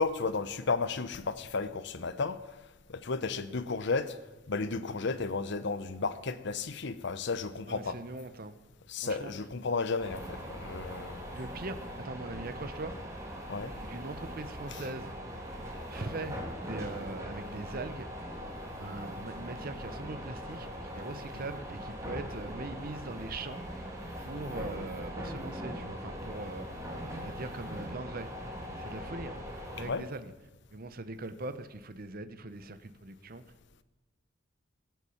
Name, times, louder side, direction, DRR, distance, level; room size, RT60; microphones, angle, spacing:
voice 1, 0.0-2.4 2.9-4.2 4.5-8.0 8.9-11.3 13.5-13.7 29.8-30.0, left 4 dB, 60° left, 0.7 m, -33 dB
voice 2, 7.7-8.5 9.0-9.3 11.3-12.9 13.9-15.1 15.9-18.1 18.8-23.9 24.2-26.7 27.2-28.5 28.7-29.4 29.7-30.3 30.7-33.4, right 2 dB, 50° right, 0.9 m, -41 dB
sound 1, 10.0-29.9, equal, 15° right, 2.8 m, -41 dB
17.5 x 8.1 x 7.1 m
head